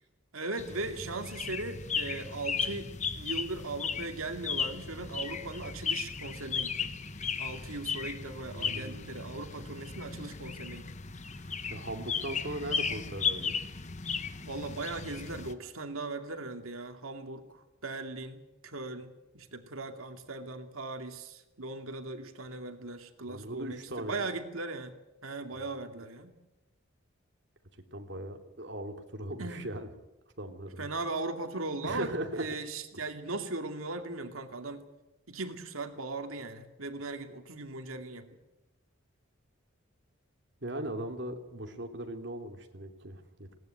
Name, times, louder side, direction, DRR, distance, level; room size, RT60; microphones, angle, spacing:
voice 1, 0.3-6.9 7.4-10.9 14.4-25.0 25.2-26.4 29.3-29.7 30.8-34.8 35.3-38.3, right 3 dB, 85° right, 6 dB, 2.5 m, -38 dB
sound 1, 0.6-15.5, left 6 dB, 35° left, 1.1 m, -36 dB
voice 2, 8.5-9.1 11.7-13.6 23.3-24.3 25.5-25.7 26.0-26.1 27.9-29.9 30.4-30.9 31.8-32.4 40.6-43.5, right 1 dB, 55° right, 4 dB, 2.8 m, -39 dB
20.5 x 18.5 x 9.3 m, 0.98 s
head